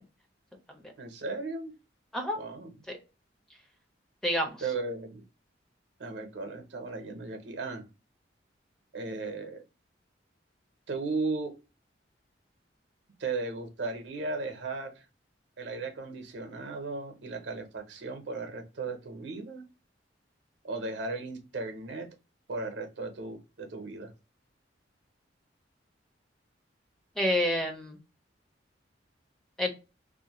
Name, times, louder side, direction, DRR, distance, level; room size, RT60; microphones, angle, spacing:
voice 1, 1.0-1.7 2.4-2.7 4.6-5.2 6.0-7.8 8.9-9.6 10.9-11.6 13.2-15.0 15.6-19.6 20.6-22.1 22.5-24.1, right 3 dB, 70° right, 0.6 m, -36 dB
voice 2, 4.2-4.6 27.2-28.0 29.6-29.7, left 1 dB, 5° left, 0.5 m, -28 dB
2.5 x 2.1 x 2.8 m
head